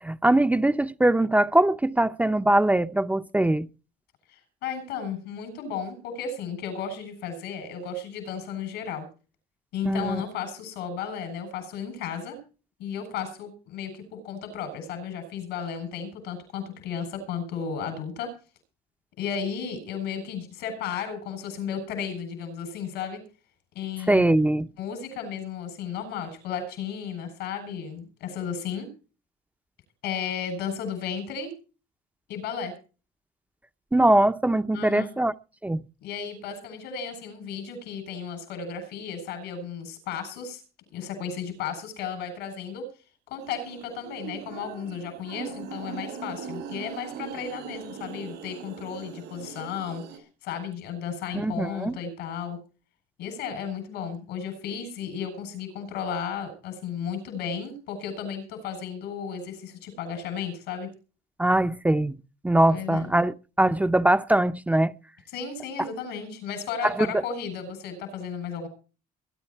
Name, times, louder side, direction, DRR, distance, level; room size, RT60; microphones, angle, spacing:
voice 1, 0.0-3.7 9.8-10.2 24.1-24.7 33.9-35.3 35.6-35.8 51.3-51.9 61.4-62.2 62.4-64.9 66.8-67.2, right 1 dB, 10° right, 0.7 m, -22 dB
voice 2, 4.3-9.0 9.7-12.4 12.8-18.3 19.2-23.2 23.7-24.4 24.8-28.9 30.0-31.5 32.3-32.7 34.7-35.1 36.0-40.6 40.9-42.9 43.3-50.0 50.4-52.6 53.2-60.9 62.7-63.1 65.3-68.7, left 7 dB, 90° left, 7.9 m, -34 dB
sound 1, 43.4-50.2, right 6 dB, 90° right, 8.0 m, -40 dB
22.5 x 11.5 x 4.5 m
cardioid pair, 110°, 17 cm